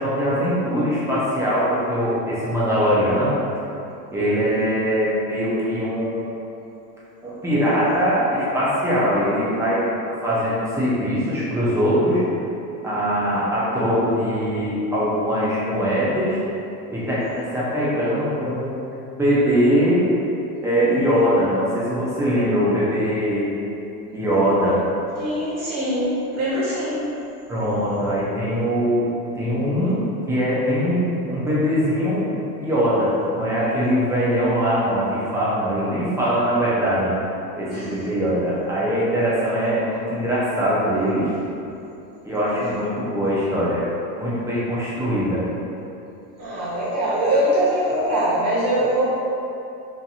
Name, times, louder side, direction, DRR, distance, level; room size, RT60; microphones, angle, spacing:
voice 1, 0.0-3.4 4.1-6.4 7.2-9.9 10.2-12.2 12.8-16.4 16.9-18.8 19.2-20.0 20.6-23.5 24.1-24.8 27.5-29.1 29.4-30.0 30.3-32.2 32.6-37.1 37.5-41.2 42.2-43.8 44.1-45.4, equal, 5° right, -9 dB, 0.3 m, -21 dB
voice 2, 25.1-26.9 37.7-37.9 46.4-49.0, right 1 dB, 30° right, -9 dB, 1.2 m, -22 dB
2.8 x 2.5 x 2.4 m, 2.7 s
supercardioid pair, 110°, 49 cm